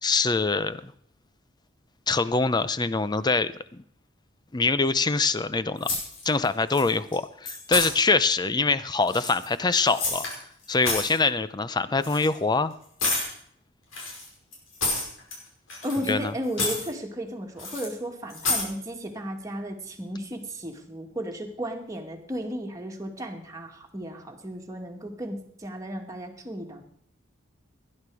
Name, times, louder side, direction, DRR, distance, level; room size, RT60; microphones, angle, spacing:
voice 1, 0.0-0.9 2.1-3.8 4.5-5.9 6.2-10.3 10.7-12.7 16.1-16.3, left 3 dB, 20° left, 14 dB, 0.6 m, -24 dB
sound 1, 5.8-6.5 6.7-7.2 7.5-7.9 9.0-10.4 10.6-11.2 12.0-12.3 13.0-13.3 13.9-15.4 15.7-16.2 16.5-16.9 17.6-17.9 18.3-18.7, left 3 dB, 85° left, 5.6 m, -29 dB
voice 2, 15.8-26.8, equal, 15° right, 1 dB, 2.1 m, -34 dB
18.5 x 11.0 x 4.9 m, 0.64 s
head